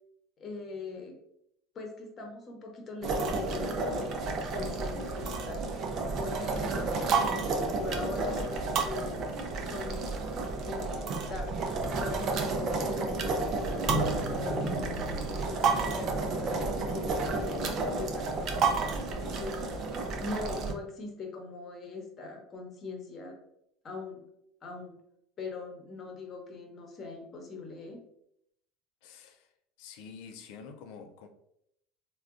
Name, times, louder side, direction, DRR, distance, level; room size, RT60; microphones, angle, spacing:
voice 1, 0.4-1.2 1.7-5.7 6.2-9.3 9.6-10.1 10.6-11.7 12.0-14.7 15.3-19.9 20.2-23.4 23.8-24.2 24.6-24.9 25.4-28.0, left 3 dB, 40° left, 0.8 m, -41 dB
sound 1, 3.0-20.7, right 3 dB, 50° right, 0.5 m, -31 dB
sound 2, 13.9-18.9, right 1 dB, 10° left, 0.8 m, -37 dB
voice 2, 29.0-29.5 29.8-31.3, left 6 dB, 75° left, 0.4 m, -47 dB
3.5 x 2.2 x 2.5 m
supercardioid pair, 100°, 0 cm